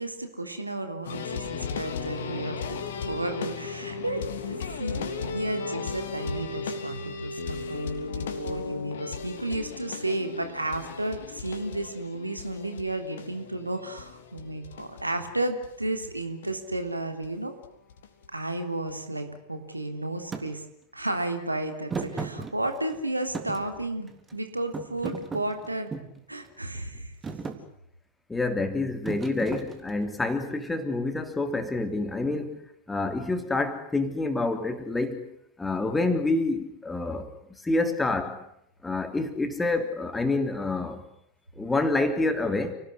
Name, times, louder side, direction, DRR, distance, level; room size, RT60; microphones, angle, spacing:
voice 1, 0.0-2.8 3.1-17.5 18.3-20.6 20.9-25.9 26.3-27.1 37.8-37.9, right 1 dB, 85° right, 3.5 m, -33 dB
sound 1, 1.0-15.7 16.0-16.1 16.4-16.5 17.2-17.3 17.6-18.3 18.9-19.0, left 5 dB, 60° left, 3.3 m, -36 dB
Thump thud, 20.3-20.5 21.9-23.0 23.3-24.3 24.7-26.2 26.7-27.0 27.2-27.6 29.0-30.1, right 4 dB, 15° right, 3.6 m, -35 dB
voice 2, 28.3-32.6 32.9-35.3 35.6-37.3 37.6-38.4 38.8-41.0 41.6-42.7, left 2 dB, 10° left, 3.6 m, -27 dB
30.0 x 19.5 x 9.9 m
figure-of-eight pair, 90°, 0 cm